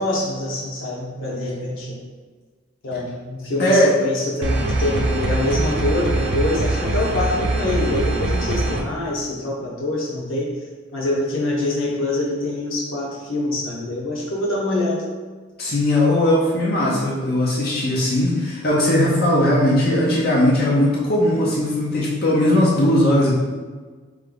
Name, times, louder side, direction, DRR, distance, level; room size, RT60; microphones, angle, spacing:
voice 1, 0.0-2.0 2.8-10.5 10.9-15.0, left 1 dB, 85° left, -4 dB, 1.1 m, -25 dB
sound 1, 4.4-8.8, right 2 dB, 55° right, 0.6 m, -22 dB
voice 2, 15.6-23.3, left 1 dB, 50° left, -6 dB, 0.8 m, -18 dB
3.9 x 3.3 x 3.9 m, 1.4 s
head